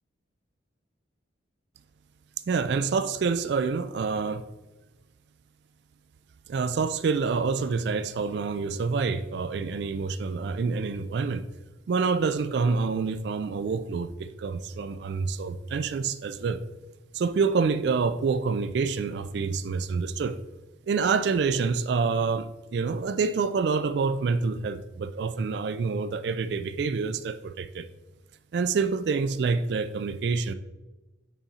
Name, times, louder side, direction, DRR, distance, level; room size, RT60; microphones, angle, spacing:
voice 1, 2.5-4.4 6.5-11.4 11.9-16.6 17.1-20.4 20.9-27.9 28.5-30.5, right 4 dB, 60° right, 12 dB, 0.3 m, -27 dB
6.1 x 4.2 x 4.1 m, 1.1 s
head